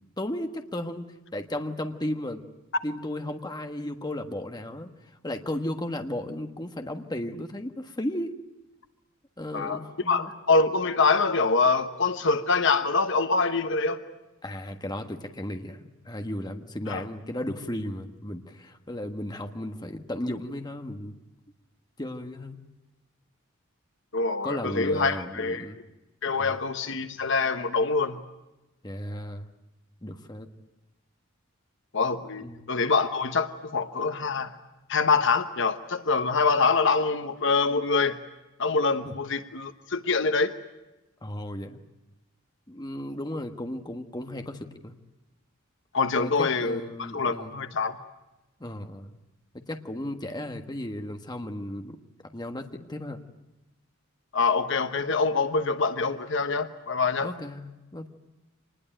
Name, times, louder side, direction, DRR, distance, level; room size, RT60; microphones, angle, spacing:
voice 1, 0.2-2.4 2.8-4.9 5.2-8.4 9.4-10.3 14.4-21.2 22.0-22.6 24.4-25.8 26.4-26.6 28.8-29.5 30.0-30.5 32.4-32.7 39.0-39.1 41.2-41.8 42.7-45.0 46.1-47.6 48.6-49.1 49.5-52.0 52.2-53.2 57.2-58.1, left 1 dB, 20° left, 6 dB, 1.4 m, -35 dB
voice 2, 10.1-14.0 16.9-17.0 24.1-25.7 26.2-28.2 31.9-34.5 34.9-38.2 38.6-40.5 45.9-48.0 54.3-57.3, left 4 dB, 65° left, 10 dB, 1.1 m, -25 dB
25.5 x 20.5 x 9.0 m, 1.0 s
head